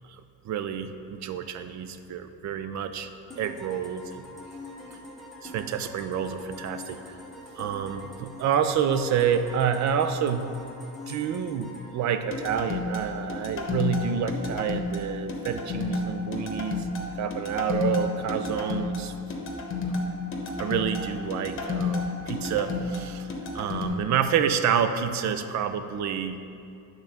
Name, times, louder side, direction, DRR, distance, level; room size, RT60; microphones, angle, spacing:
voice 1, 0.1-3.1 3.4-4.2 5.4-7.2 7.6-10.5 11.1-16.9 17.1-19.1 20.6-26.4, right 8 dB, 60° right, 9 dB, 0.5 m, -28 dB
sound 1, 3.3-13.0, left 1 dB, ahead, 1.1 m, -44 dB
sound 2, 12.3-23.9, left 3 dB, 40° left, 1.0 m, -31 dB
8.5 x 3.9 x 5.9 m, 2.6 s
cardioid pair, 125°, 32 cm